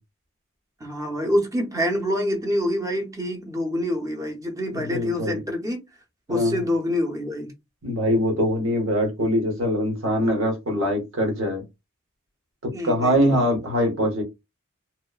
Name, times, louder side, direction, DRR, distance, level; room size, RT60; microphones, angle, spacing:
voice 1, 0.8-5.8 6.3-7.5 12.7-13.5, left 1 dB, 15° right, 0.6 m, -26 dB
voice 2, 4.9-5.4 6.3-6.6 7.8-11.6 12.6-14.2, equal, 70° right, 1.0 m, -23 dB
2.9 x 2.1 x 2.3 m
head